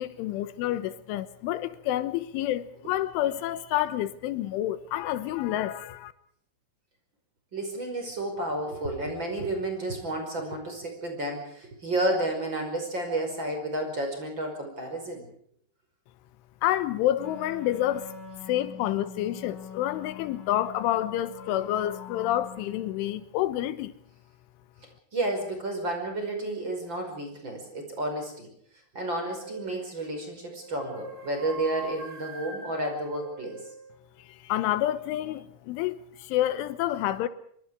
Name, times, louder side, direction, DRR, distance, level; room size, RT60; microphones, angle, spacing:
voice 1, 0.0-6.1 16.6-18.1 18.5-23.9 34.2-37.3, left 13 dB, 90° left, 3.6 m, -28 dB
voice 2, 7.5-15.3 25.1-28.5 28.9-33.6, right 1 dB, 25° right, 5.6 m, -31 dB
Wind instrument woodwind instrument, 17.2-23.3, left 5 dB, 40° left, 6.0 m, -44 dB
sound 1, 29.4-29.8 30.6-34.0, right 3 dB, 40° right, 9.1 m, -43 dB
26.0 x 24.0 x 4.9 m
omnidirectional pair, 5.5 m